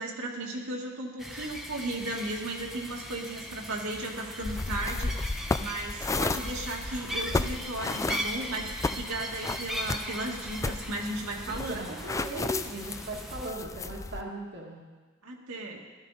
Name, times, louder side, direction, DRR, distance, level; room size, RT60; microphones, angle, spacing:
voice 1, 0.0-12.0 15.2-15.9, right 2 dB, 75° right, -1 dB, 2.0 m, -35 dB
sound 1, 1.2-13.5, equal, ahead, 1.0 m, -39 dB
sound 2, 4.5-14.2, left 3 dB, 15° left, 0.3 m, -34 dB
voice 2, 11.5-14.8, right 1 dB, 55° right, -2 dB, 1.6 m, -38 dB
15.5 x 13.0 x 4.1 m, 1.4 s
head